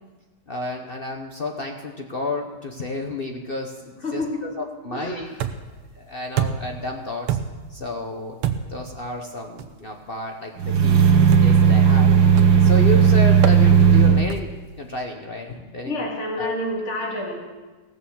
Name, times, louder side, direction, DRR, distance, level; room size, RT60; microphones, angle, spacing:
voice 1, 0.5-5.3 5.9-7.4 7.7-8.4 8.7-11.1 11.4-12.1 12.6-16.1 16.4-16.5, left 1 dB, 60° left, 3 dB, 0.6 m, -31 dB
voice 2, 4.0-4.4 4.9-5.2 15.8-17.4, left 1 dB, 35° left, -2 dB, 2.5 m, -28 dB
sound 1, 5.4-5.8 6.4-6.8 7.3-7.7 8.4-8.9 9.6-9.8 11.3-11.7 12.4-12.7 13.4-13.6 14.3-14.6, right 9 dB, 90° right, 1.7 m, -27 dB
sound 2, 10.6-14.2, right 7 dB, 70° right, 2.0 m, -15 dB
17.0 x 6.8 x 7.1 m, 1.3 s
omnidirectional pair, 2.3 m